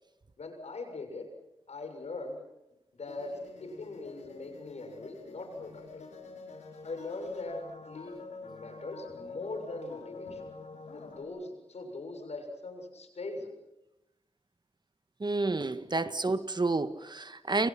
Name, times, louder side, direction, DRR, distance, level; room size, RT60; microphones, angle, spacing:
voice 1, 0.4-1.2 1.7-2.4 3.0-3.3 3.6-6.1 6.8-10.5 10.9-13.5, left 2 dB, 70° left, 5 dB, 7.0 m, -41 dB
sound 1, 3.0-11.2, left 3 dB, 90° left, 6.6 m, -47 dB
voice 2, 15.2-17.7, right 3 dB, 40° right, 11 dB, 1.7 m, -30 dB
30.0 x 26.5 x 6.1 m, 0.94 s
cardioid pair, 55°, 11 cm